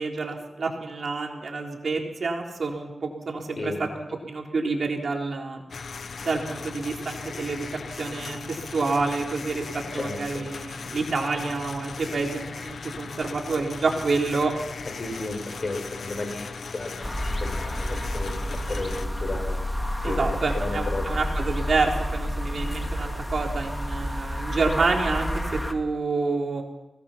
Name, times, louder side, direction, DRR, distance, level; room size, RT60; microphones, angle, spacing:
voice 1, 0.0-3.7 4.0-5.6 6.2-7.7 8.0-9.6 9.9-14.5 20.0-25.4 25.7-26.6, right 3 dB, 65° right, 1 dB, 3.8 m, -28 dB
voice 2, 3.5-4.0 9.9-10.5 15.0-18.9 19.2-19.6 20.0-21.0, left 2 dB, 50° left, 4 dB, 5.9 m, -34 dB
machine metal vibrating grinding drilling hole maybe, 5.7-19.1, left 5 dB, 75° left, 1.1 m, -38 dB
sound 1, 17.0-25.7, equal, 10° left, 2.2 m, -29 dB
24.0 x 18.5 x 5.8 m, 1.0 s
cardioid pair, 65°, 0 cm